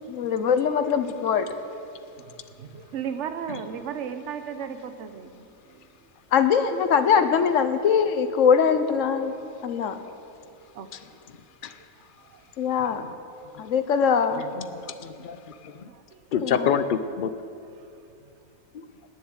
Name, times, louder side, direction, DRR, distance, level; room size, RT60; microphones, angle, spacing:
voice 1, 0.1-1.5 6.3-9.4 9.6-10.0 12.6-13.1 13.6-14.4 16.4-16.7, left 7 dB, 60° left, 9 dB, 1.2 m, -22 dB
voice 2, 2.2-5.8 10.7-10.9 12.2-12.5 15.2-15.3 15.8-16.2, right 7 dB, 55° right, 9 dB, 1.1 m, -36 dB
voice 3, 14.6-15.9 16.3-17.3 18.7-18.8, left 7 dB, 85° left, 11 dB, 0.4 m, -27 dB
18.5 x 7.1 x 9.4 m, 2.6 s
omnidirectional pair, 1.6 m